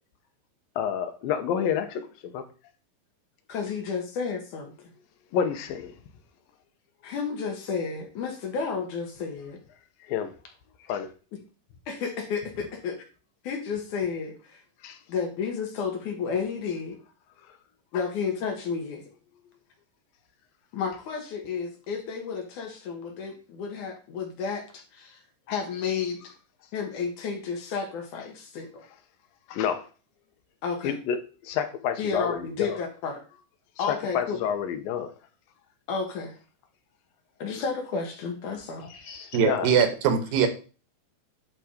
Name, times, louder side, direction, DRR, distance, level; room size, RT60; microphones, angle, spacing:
voice 1, 0.8-2.4 5.3-5.9 10.1-10.3 10.9-11.1 14.8-15.0 17.9-18.0 29.5-29.8 30.8-32.8 33.9-35.1 39.4-39.7, left 8 dB, 85° left, 2.6 m, -29 dB
voice 2, 3.5-4.7 7.0-9.6 11.9-13.0 13.4-14.6 15.1-17.0 17.9-19.1 20.7-25.2 25.5-26.3 26.7-28.8 30.6-30.9 32.0-33.2 33.8-34.4 35.9-36.3 37.4-39.4, left 5 dB, 65° left, 2.9 m, -32 dB
voice 3, 39.3-40.5, right 7 dB, 80° right, 2.8 m, -22 dB
11.0 x 3.7 x 4.9 m
omnidirectional pair, 4.1 m